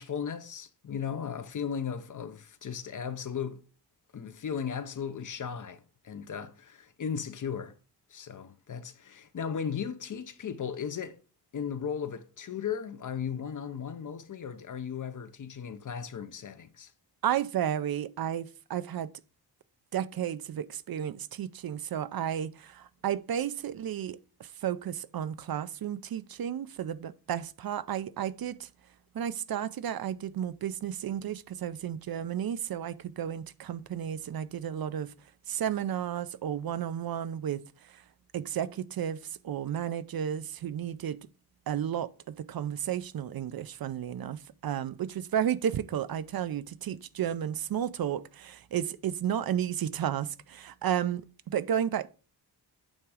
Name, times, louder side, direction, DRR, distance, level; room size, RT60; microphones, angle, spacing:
voice 1, 0.0-3.6 4.1-7.7 8.1-11.2 11.5-16.9, left 7 dB, 50° left, 0.6 m, -36 dB
voice 2, 17.2-19.1 19.9-28.7 29.1-35.1 35.5-38.0 38.3-41.2 41.7-52.1, right 9 dB, 60° right, 0.5 m, -33 dB
8.8 x 3.6 x 4.8 m
wide cardioid pair, 170°, 42 cm